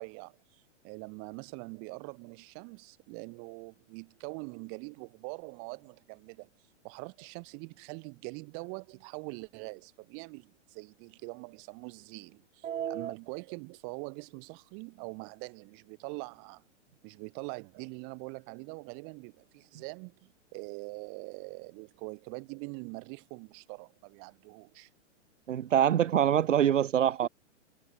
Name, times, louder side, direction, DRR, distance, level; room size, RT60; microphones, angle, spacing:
voice 1, 0.0-6.5 6.8-16.6 17.0-24.9, right 38 dB, 40° right, 4.3 m, -43 dB
voice 2, 12.6-13.1 25.5-27.3, right 10 dB, 85° right, 1.6 m, -25 dB
hypercardioid pair, 140°, 37 cm